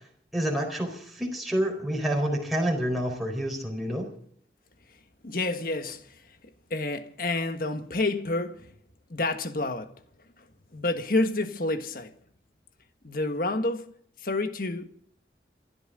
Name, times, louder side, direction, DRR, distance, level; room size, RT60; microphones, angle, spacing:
voice 1, 0.3-4.1, right 1 dB, ahead, 4.4 m, -28 dB
voice 2, 5.2-6.2 6.7-8.7 9.1-9.9 10.7-12.1 13.0-13.9 14.2-14.9, left 2 dB, 55° left, 1.6 m, -29 dB
28.0 x 12.5 x 3.8 m
head